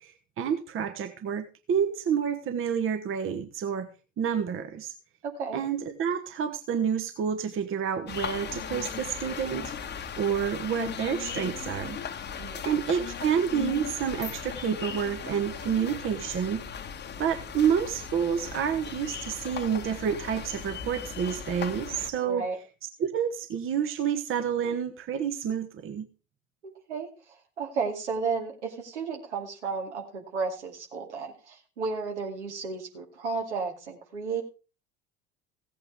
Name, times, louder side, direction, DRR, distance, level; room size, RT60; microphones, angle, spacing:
voice 1, 0.0-3.9 4.2-4.9 5.5-9.9 10.2-12.0 12.6-16.6 17.2-22.4 23.0-26.1, right 8 dB, 35° right, 8 dB, 1.3 m, -29 dB
voice 2, 5.2-5.6 12.4-12.6 22.2-22.6 26.9-34.4, right 4 dB, 75° right, 1 dB, 2.4 m, -33 dB
sound 1, 8.1-22.1, left 7 dB, 30° left, 1.3 m, -37 dB
16.0 x 8.4 x 3.6 m, 0.33 s
figure-of-eight pair, 65°, 35 cm